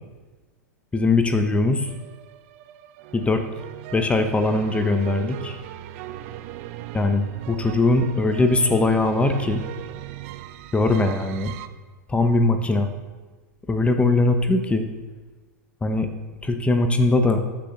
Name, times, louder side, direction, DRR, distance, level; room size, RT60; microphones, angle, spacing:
voice 1, 0.9-1.9 3.1-3.4 3.9-5.6 6.9-9.6 10.7-11.5 12.1-12.9 13.7-14.9 15.8-16.1 16.4-17.4, left 2 dB, 10° left, 7 dB, 1.1 m, -21 dB
sound 1, 1.9-11.7, right 13 dB, 50° right, 0.7 m, -38 dB
13.5 x 6.6 x 6.5 m, 1.3 s
figure-of-eight pair, 100°, 10 cm